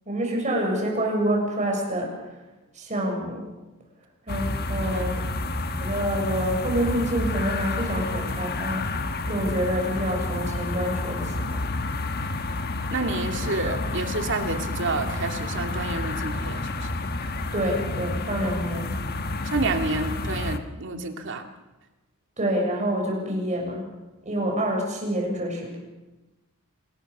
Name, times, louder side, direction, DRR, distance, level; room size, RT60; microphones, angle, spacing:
voice 1, 0.1-2.1 2.7-3.5 4.3-5.2 5.8-11.6 13.6-13.7 17.5-18.9 22.4-23.8 24.2-25.8, equal, 35° right, 0 dB, 7.3 m, -27 dB
sound 1, 4.3-20.6, left 2 dB, 45° left, 1.4 m, -30 dB
voice 2, 12.9-16.9 19.4-21.4, right 3 dB, 55° right, 5 dB, 2.6 m, -29 dB
26.5 x 19.5 x 6.9 m, 1.1 s
head